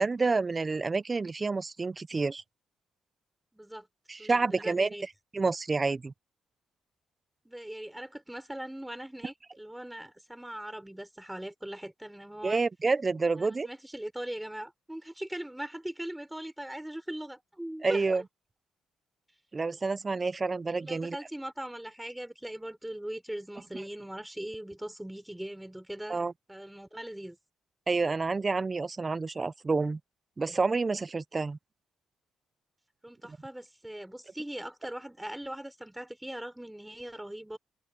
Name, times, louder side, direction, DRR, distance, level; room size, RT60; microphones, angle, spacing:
voice 1, 0.0-2.4 4.1-4.9 5.3-6.1 12.4-13.7 17.8-18.2 19.5-21.2 26.1-26.3 27.9-30.0 30.4-31.6, right 4 dB, 30° right, 0.7 m, -28 dB
voice 2, 3.5-3.9 4.2-5.1 7.4-12.6 13.4-18.2 20.8-26.2 26.5-27.4 33.0-37.6, right 1 dB, 5° right, 4.3 m, -40 dB
cardioid pair, 90°, 0 cm